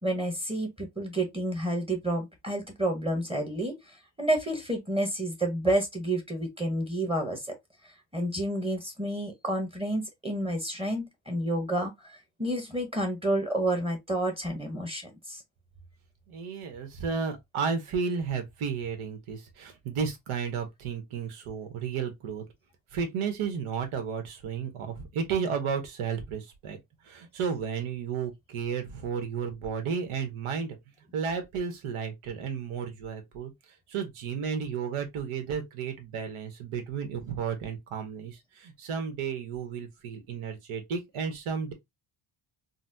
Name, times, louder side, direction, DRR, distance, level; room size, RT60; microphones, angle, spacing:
voice 1, 0.0-7.5 7.8-15.4, right 1 dB, 10° right, 0.9 m, -30 dB
voice 2, 16.3-22.4 22.9-26.8 27.0-30.8 31.1-33.5 33.9-41.7, right 6 dB, 80° right, 1.2 m, -33 dB
4.0 x 2.0 x 2.6 m
cardioid pair, 105°, 49 cm